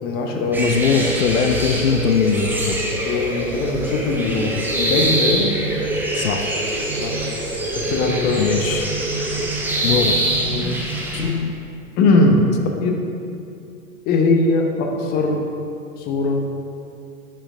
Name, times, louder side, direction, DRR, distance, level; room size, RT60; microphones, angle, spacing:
voice 1, 0.0-1.0 3.0-5.5 7.0-7.2 7.7-8.5 9.1-9.5 10.4-10.7 12.0-13.0 14.0-15.5 16.0-16.4, left 2 dB, 20° left, 2 dB, 0.9 m, -20 dB
sound 1, 0.5-11.3, right 1 dB, 5° right, 0.8 m, -24 dB
voice 2, 0.6-2.8 6.1-6.4 8.4-8.9 9.8-10.3 11.1-11.5, left 6 dB, 70° left, 7 dB, 0.6 m, -20 dB
sound 2, 4.7-11.6, right 4 dB, 65° right, 0.7 m, -34 dB
10.0 x 9.1 x 2.6 m, 2.6 s
figure-of-eight pair, 105°, 42 cm